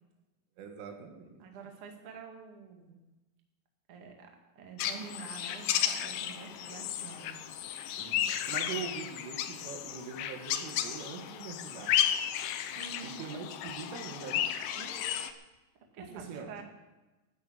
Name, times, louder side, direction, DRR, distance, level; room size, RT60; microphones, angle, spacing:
voice 1, 0.6-1.4 8.0-12.0 13.0-14.6 16.0-16.5, right 5 dB, 90° right, 4 dB, 4.3 m, -43 dB
voice 2, 1.4-3.0 3.9-7.4 12.7-13.5 14.7-15.3 15.9-16.6, right 5 dB, 45° right, 2 dB, 1.9 m, -47 dB
sound 1, 4.8-15.3, left 10 dB, 85° left, 2.1 m, -33 dB
13.0 x 9.5 x 8.7 m, 1.1 s
omnidirectional pair, 5.5 m